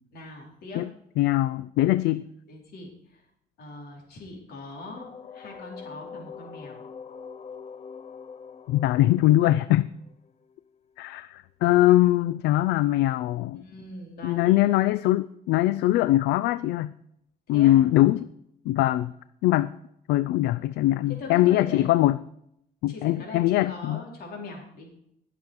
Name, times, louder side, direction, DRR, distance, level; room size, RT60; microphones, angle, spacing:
voice 1, 0.1-0.8 2.5-3.2 3.6-5.1 5.3-6.8 13.6-14.7 17.5-17.8 21.2-21.9 22.9-24.9, left 2 dB, 65° left, 0 dB, 4.3 m, -41 dB
voice 2, 1.2-2.3 8.7-9.9 11.0-13.6 14.2-16.9 17.5-18.3 18.7-19.1 19.4-19.7 20.1-22.2 22.8-24.0, left 15 dB, 85° left, 16 dB, 0.4 m, -22 dB
sound 1, 5.0-10.7, left 6 dB, 40° left, 0.8 m, -44 dB
19.5 x 7.0 x 4.8 m, 0.76 s
cardioid pair, 110°, 17 cm